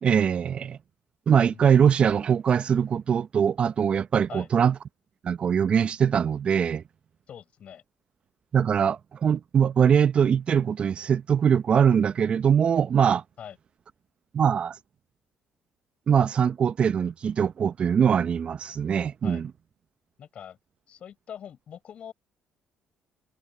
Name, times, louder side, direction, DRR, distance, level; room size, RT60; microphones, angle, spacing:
voice 1, 0.0-0.8 1.3-4.7 5.2-6.8 8.5-13.2 14.3-14.8 16.1-19.5, right 7 dB, 50° right, 0.9 m, -22 dB
voice 2, 7.3-7.8 13.4-13.6 19.2-19.4 20.2-20.6 20.9-22.1, left 9 dB, 60° left, 7.5 m, -43 dB
hypercardioid pair, 55°, 2 cm